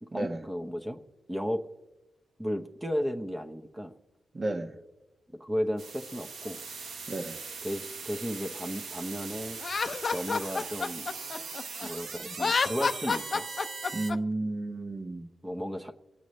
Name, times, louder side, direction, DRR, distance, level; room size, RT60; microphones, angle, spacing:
voice 1, 0.0-1.0 1.3-1.7 2.4-3.9 5.4-6.6 7.6-9.6 10.1-11.1 11.8-13.5 15.4-15.9, equal, 10° right, 5 dB, 0.9 m, -34 dB
voice 2, 4.3-4.8 7.1-7.4 13.9-15.3, right 2 dB, 35° right, 6 dB, 1.3 m, -32 dB
sound 1, 5.8-14.1, right 4 dB, 85° right, 1.1 m, -40 dB
Laughter, 9.6-11.9 12.3-14.2, left 4 dB, 45° left, 0.6 m, -29 dB
25.0 x 8.5 x 3.2 m, 1.0 s
cardioid pair, 100°, 0 cm